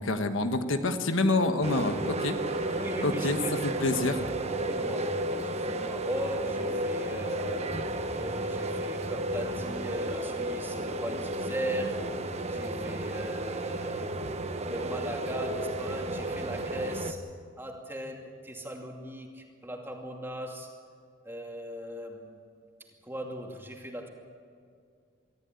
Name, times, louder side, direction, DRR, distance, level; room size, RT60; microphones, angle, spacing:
voice 1, 0.0-2.3 3.0-3.4 3.8-4.2, left 2 dB, 75° left, 7 dB, 1.3 m, -27 dB
sound 1, 1.6-17.1, right 1 dB, 30° right, 1.0 m, -33 dB
voice 2, 2.7-4.1 4.6-12.2 12.4-14.2 14.7-17.3 17.6-20.8 21.2-22.4 23.0-24.1, right 1 dB, 10° right, 1 dB, 2.5 m, -38 dB
24.0 x 14.5 x 9.5 m, 2.2 s
head